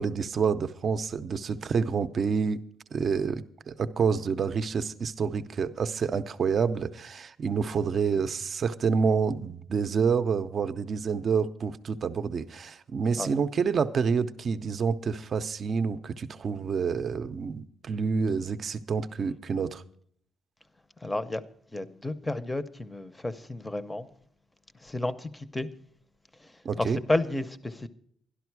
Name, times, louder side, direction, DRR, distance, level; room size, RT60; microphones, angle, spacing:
voice 1, 0.0-2.6 2.9-19.8 26.6-27.0, right 5 dB, 40° right, 0.6 m, -28 dB
voice 2, 21.0-21.4 21.7-24.1 24.8-25.7 26.4-26.5 26.8-27.9, left 2 dB, 10° left, 0.7 m, -31 dB
12.5 x 11.5 x 4.7 m
cardioid pair, 130°, 0 cm